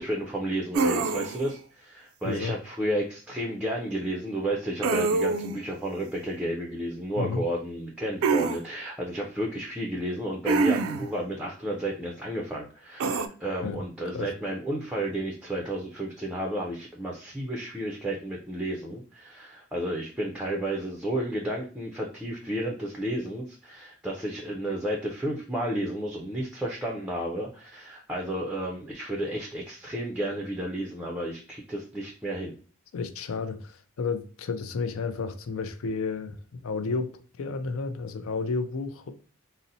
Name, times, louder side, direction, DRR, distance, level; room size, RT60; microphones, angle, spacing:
voice 1, 0.0-32.5, right 1 dB, 5° right, 0.4 m, -32 dB
sound 1, 0.7-1.5 4.8-5.6 8.2-8.6 10.5-11.1 13.0-13.3, right 4 dB, 75° right, 0.3 m, -25 dB
voice 2, 2.2-2.6 7.2-7.4 13.6-13.8 14.1-14.3 32.9-39.1, left 4 dB, 75° left, 0.4 m, -32 dB
3.9 x 2.0 x 2.6 m
head